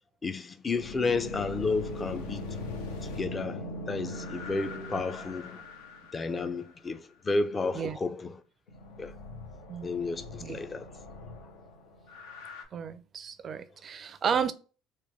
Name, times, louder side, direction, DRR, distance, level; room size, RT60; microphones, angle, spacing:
voice 1, 0.2-2.6 3.0-5.6 6.1-8.4 9.0-9.1 9.8-10.9, left 3 dB, 30° left, 0.4 m, -32 dB
sound 1, 0.7-6.7 8.7-12.6, left 1 dB, 85° left, 0.5 m, -41 dB
voice 2, 12.7-14.5, right 7 dB, 40° right, 0.4 m, -32 dB
3.1 x 2.2 x 3.2 m
supercardioid pair, 80°, 0 cm